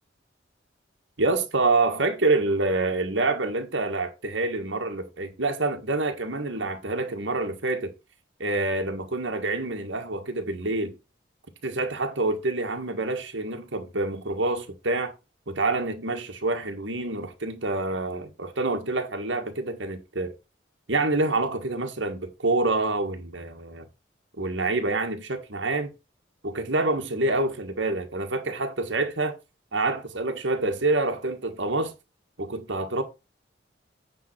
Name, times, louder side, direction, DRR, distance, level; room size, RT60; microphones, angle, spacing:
voice 1, 1.2-7.9 8.4-11.0 11.6-15.1 15.5-20.3 20.9-23.9 24.4-25.9 26.4-29.4 29.7-31.9 32.4-33.0, right 2 dB, 85° right, 1.7 m, -27 dB
9.4 x 3.7 x 6.1 m
head